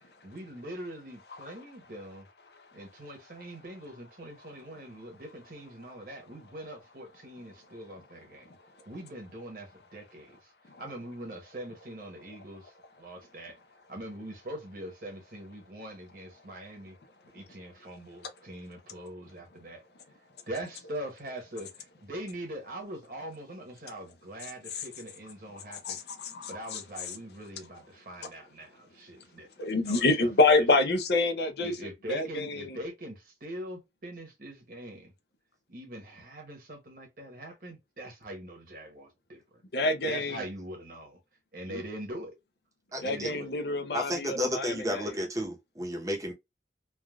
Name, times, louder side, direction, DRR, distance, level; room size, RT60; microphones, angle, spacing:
voice 1, 0.2-2.3 2.7-8.5 8.9-10.5 10.8-12.7 13.0-13.6 13.9-17.0 17.3-19.8 20.5-26.0 26.5-30.3 31.6-35.1 35.7-39.4 40.1-41.2 41.5-42.4 42.9-43.5, right 1 dB, 50° right, 1.0 m, -42 dB
voice 2, 25.7-26.8 29.6-31.7 32.1-32.8 39.7-40.4 41.7-41.8 43.0-45.1, left 2 dB, 65° left, 0.6 m, -27 dB
voice 3, 42.9-43.3 43.9-46.3, equal, 20° right, 0.7 m, -32 dB
3.4 x 2.3 x 2.3 m
head